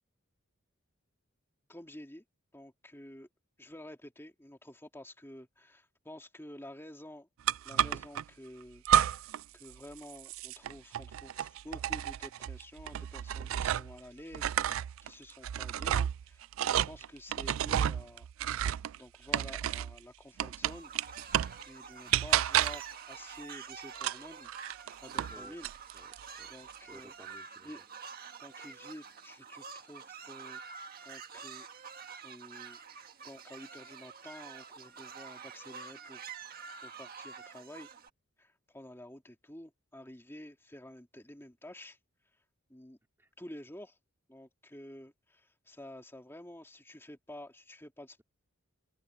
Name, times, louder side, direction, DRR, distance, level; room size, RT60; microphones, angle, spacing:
voice 1, 1.7-2.2 2.5-3.3 3.6-7.3 7.6-8.8 9.5-18.3 19.0-20.9 21.7-24.5 25.0-25.7 26.5-27.1 27.6-27.8 28.4-30.6 31.0-32.8 33.2-36.4 36.8-37.9 38.4-42.0 42.7-43.0 43.4-44.0 44.3-48.2, left 1 dB, 10° left, 2.6 m, -50 dB
sound 1, 7.5-8.2 8.8-9.4 9.7-14.0 14.3-20.0 20.4-21.6 22.1-22.9 23.9-25.3 25.6-26.2, right 10 dB, 70° right, 0.3 m, -31 dB
sound 2, 20.7-38.1, right 6 dB, 45° right, 1.5 m, -47 dB
voice 2, 25.9-26.5 26.8-27.8 43.2-43.3, equal, 10° right, 3.1 m, -56 dB
open air
head